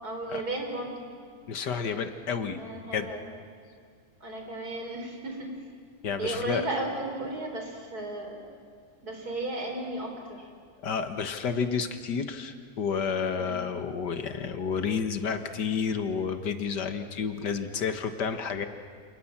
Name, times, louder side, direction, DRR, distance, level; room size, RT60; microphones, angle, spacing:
voice 1, 0.0-1.1 2.5-3.3 4.2-5.5 6.2-8.4 9.0-10.5 13.4-13.7, right 2 dB, 65° right, 3 dB, 4.8 m, -34 dB
voice 2, 1.5-2.6 2.9-3.1 6.0-6.6 10.8-18.7, left 6 dB, 80° left, 8 dB, 2.1 m, -30 dB
28.5 x 27.5 x 7.4 m, 2.2 s
omnidirectional pair, 1.8 m